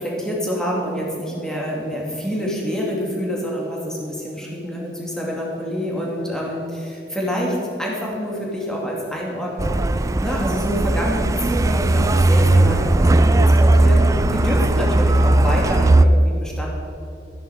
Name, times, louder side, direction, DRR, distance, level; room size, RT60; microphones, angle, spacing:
voice 1, 0.0-16.7, equal, 5° left, -3 dB, 2.3 m, -27 dB
Truck, 9.6-16.1, right 2 dB, 20° right, 0.3 m, -17 dB
14.5 x 10.0 x 4.8 m, 2.6 s
head